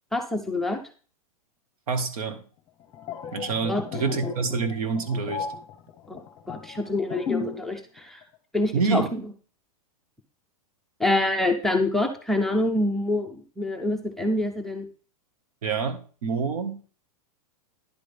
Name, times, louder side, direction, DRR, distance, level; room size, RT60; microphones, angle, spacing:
voice 1, 0.1-0.8 3.7-3.8 6.1-6.2 6.5-8.2 8.5-9.3 11.0-14.9, left 2 dB, ahead, 6 dB, 0.5 m, -26 dB
voice 2, 1.9-2.4 3.3-5.5 8.7-9.1 15.6-16.8, right 5 dB, 70° right, 9 dB, 1.6 m, -27 dB
sound 1, 2.8-7.7 8.0-8.2, left 5 dB, 20° left, 1.1 m, -34 dB
10.5 x 8.2 x 3.5 m, 0.40 s
supercardioid pair, 160°, 19 cm